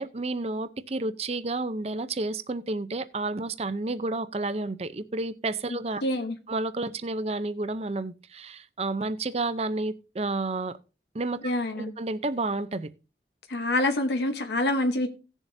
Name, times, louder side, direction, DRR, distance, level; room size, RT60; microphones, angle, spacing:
voice 1, 0.0-6.0 6.5-10.8 11.1-12.9, right 2 dB, 35° right, 0.6 m, -31 dB
voice 2, 6.0-6.4 11.4-11.9 13.5-15.1, left 1 dB, 70° left, 0.9 m, -26 dB
17.5 x 7.2 x 2.7 m
head